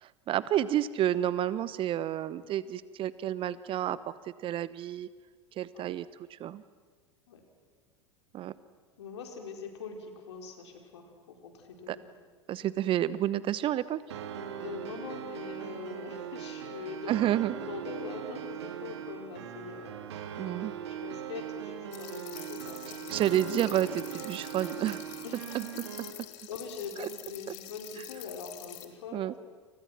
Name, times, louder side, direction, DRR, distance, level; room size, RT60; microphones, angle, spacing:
voice 1, 0.0-4.0 4.4-5.1 5.6-6.6 8.3-8.5 11.9-12.0 12.5-14.0 17.1-17.6 20.4-20.7 23.1-25.0 25.5-25.6 27.0-27.1 29.1-29.3, right 12 dB, 35° right, 17 dB, 1.0 m, -30 dB
voice 2, 9.0-12.0 14.6-17.2 17.6-20.2 20.8-23.2 25.2-25.8 26.5-29.4, left 5 dB, 65° left, 3 dB, 5.1 m, -43 dB
sound 1, 14.1-26.1, right 9 dB, 65° right, 2.4 m, -40 dB
sound 2, 21.9-28.8, left 15 dB, 50° left, 2.7 m, -46 dB
30.0 x 29.0 x 6.1 m, 1.5 s
figure-of-eight pair, 85°, 15 cm